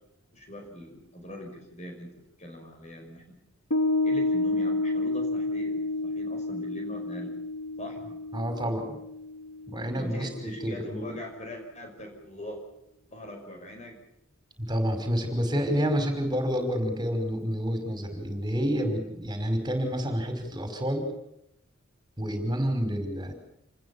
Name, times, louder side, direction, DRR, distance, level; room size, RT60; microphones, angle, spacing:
voice 1, 0.3-3.4 4.0-7.4 7.8-8.0 9.9-12.6 13.1-14.0, equal, 35° left, 3 dB, 5.4 m, -41 dB
Piano, 3.7-10.5, left 2 dB, 85° left, 3.3 m, -30 dB
voice 2, 8.3-9.0 9.7-11.2 14.7-21.1 22.2-23.3, equal, 20° right, 7 dB, 5.4 m, -29 dB
28.5 x 20.5 x 7.2 m, 0.81 s
head